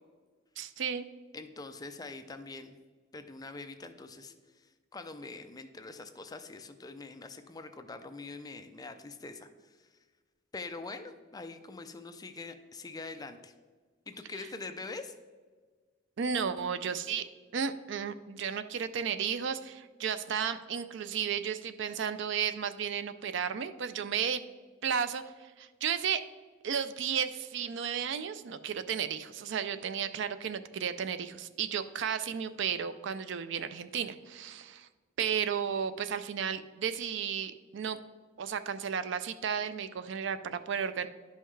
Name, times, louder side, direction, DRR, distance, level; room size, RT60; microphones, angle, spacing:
voice 1, 0.6-1.1 16.2-17.3 17.5-24.4 24.8-26.2 26.6-34.9 35.2-38.0 38.4-41.1, right 7 dB, 65° right, 12 dB, 0.4 m, -33 dB
voice 2, 1.3-2.7 3.1-9.9 10.5-13.5 14.1-15.1, left 3 dB, 20° left, 7 dB, 0.5 m, -44 dB
11.0 x 5.5 x 3.2 m, 1.4 s
head